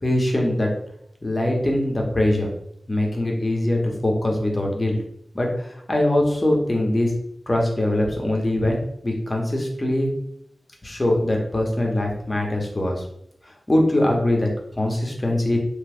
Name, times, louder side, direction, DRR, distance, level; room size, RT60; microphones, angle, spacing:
voice 1, 0.0-0.7 1.2-2.5 2.9-5.0 5.3-7.1 7.5-8.8 9.0-10.1 10.8-13.0 13.7-14.5 14.8-15.6, left 1 dB, 30° left, 0 dB, 0.9 m, -22 dB
3.0 x 2.2 x 3.4 m, 0.72 s
cardioid pair, 50°, 0 cm